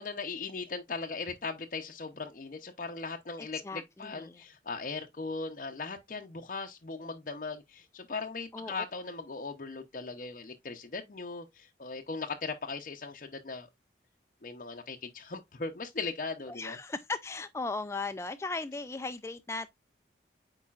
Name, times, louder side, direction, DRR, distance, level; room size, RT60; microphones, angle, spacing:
voice 1, 0.0-13.7 14.4-16.8, left 4 dB, 45° left, 0.6 m, -38 dB
voice 2, 3.4-4.4 8.5-8.7 16.5-19.7, left 3 dB, 15° left, 0.3 m, -37 dB
8.5 x 4.8 x 2.4 m
head